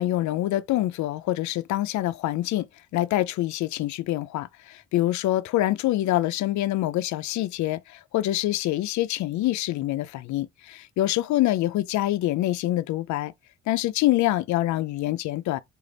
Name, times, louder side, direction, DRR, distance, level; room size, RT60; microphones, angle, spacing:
voice 1, 0.0-2.6 2.9-7.8 8.1-13.3 13.7-15.6, left 15 dB, 70° left, 0.4 m, -25 dB
3.8 x 2.5 x 3.3 m
cardioid pair, 90°, 30 cm